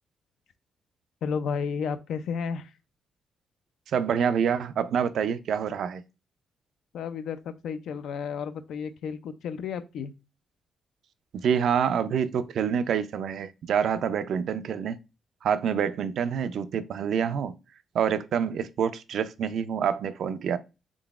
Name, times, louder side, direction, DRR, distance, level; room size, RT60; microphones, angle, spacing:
voice 1, 1.2-2.7 6.9-10.1, left 6 dB, 80° left, 0.4 m, -32 dB
voice 2, 3.9-6.0 11.4-15.0 15.4-17.5 17.9-20.6, right 7 dB, 70° right, 0.3 m, -27 dB
3.7 x 3.6 x 2.3 m
cardioid pair, 115°, 0 cm